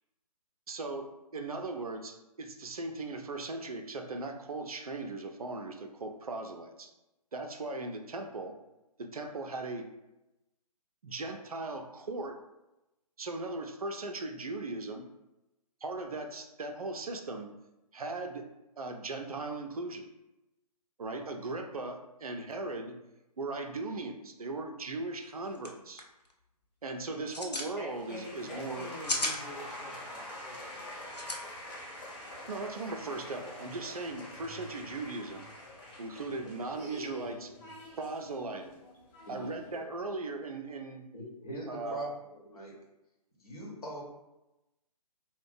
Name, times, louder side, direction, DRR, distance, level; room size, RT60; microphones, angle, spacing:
voice 1, 0.7-6.9 7.3-8.5 9.0-9.9 11.0-12.4 13.2-15.1 15.8-17.5 17.9-18.4 18.8-20.1 21.0-23.0 23.4-26.0 26.8-28.9 32.5-35.5 36.0-37.5 38.0-38.8 39.3-41.1 41.7-42.1, right 2 dB, 65° right, 5 dB, 0.4 m, -38 dB
sound 1, 25.2-25.3 25.5-25.7 26.0-26.3 27.1-27.7 28.8-29.4 31.1-31.4, left 2 dB, 85° left, 0.5 m, -33 dB
voice 2, 27.8-30.8, left 1 dB, 10° left, -8 dB, 0.6 m, -46 dB
sound 2, 27.9-39.8, left 1 dB, 45° left, 1.2 m, -46 dB
voice 3, 41.1-42.7 43.4-44.0, right 1 dB, 65° left, -3 dB, 1.0 m, -42 dB
2.5 x 2.1 x 3.7 m, 0.95 s
figure-of-eight pair, 135°, 20 cm